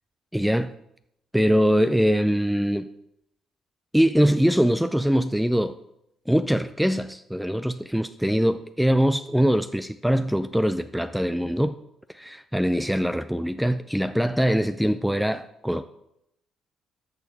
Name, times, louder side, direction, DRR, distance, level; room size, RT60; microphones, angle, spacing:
voice 1, 0.3-0.7 1.3-2.9 3.9-5.8 6.3-11.7 12.1-15.8, equal, ahead, 0.4 m, -22 dB
13.0 x 6.4 x 4.0 m
cardioid pair, 90°, 0 cm